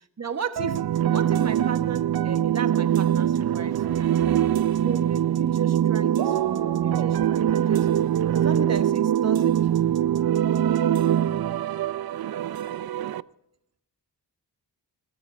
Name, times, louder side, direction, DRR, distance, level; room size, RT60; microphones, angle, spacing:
voice 1, 0.2-0.8 1.1-4.4 4.8-7.9 8.3-9.6, right 5 dB, 40° right, 8 dB, 1.3 m, -34 dB
sound 1, 0.6-13.2, right 10 dB, 60° right, 0.5 m, -23 dB
20.5 x 17.0 x 3.4 m, 0.75 s
wide cardioid pair, 130°, 42 cm